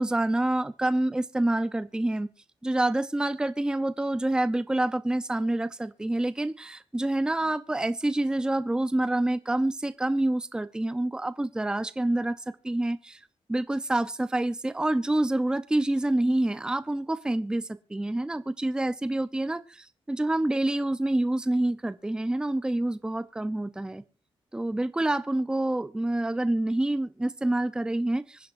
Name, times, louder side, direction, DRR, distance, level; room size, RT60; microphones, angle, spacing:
voice 1, 0.0-2.3 2.6-12.4 12.6-13.2 13.5-24.0 24.5-28.5, right 1 dB, 10° right, 13 dB, 0.6 m, -27 dB
25.5 x 10.0 x 2.5 m, 0.30 s
wide cardioid pair, 155°, 9 cm